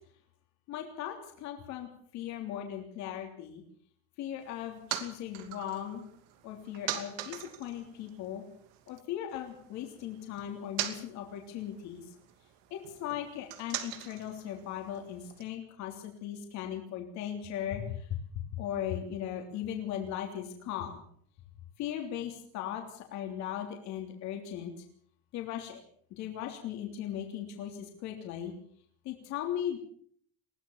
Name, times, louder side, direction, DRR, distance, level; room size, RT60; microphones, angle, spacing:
voice 1, 0.7-3.6 4.2-6.0 6.4-8.4 8.9-12.1 12.7-18.2 18.5-21.0 21.8-24.7 25.3-25.8 26.1-28.5 29.1-29.8, left 10 dB, 50° left, 3 dB, 3.3 m, -38 dB
sound 1, 4.4-9.0 9.3-15.4, right 12 dB, 70° right, 2.8 m, -42 dB
21.5 x 17.0 x 7.3 m, 0.62 s
cardioid pair, 180°, 37 cm